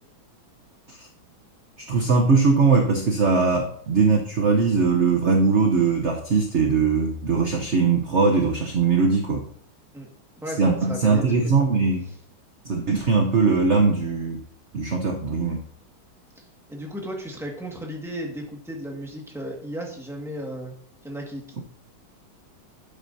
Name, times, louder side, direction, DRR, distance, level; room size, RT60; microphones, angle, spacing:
voice 1, 1.8-9.4 10.6-12.1 12.6-14.4 14.7-15.6, right 4 dB, 50° right, 2 dB, 0.9 m, -21 dB
voice 2, 10.4-11.6 16.3-16.4 16.7-20.7 21.0-21.5, equal, ahead, -1 dB, 1.6 m, -34 dB
12.0 x 8.7 x 2.8 m, 0.62 s
omnidirectional pair, 2.3 m